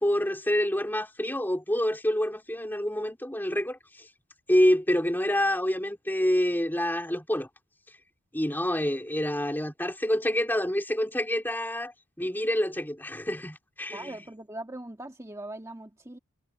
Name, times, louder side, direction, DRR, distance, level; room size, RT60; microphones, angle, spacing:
voice 1, 0.0-3.8 4.5-7.5 8.3-11.9 12.2-14.2, left 1 dB, 10° left, 3.2 m, -27 dB
voice 2, 13.9-16.2, right 1 dB, 15° right, 2.0 m, -40 dB
head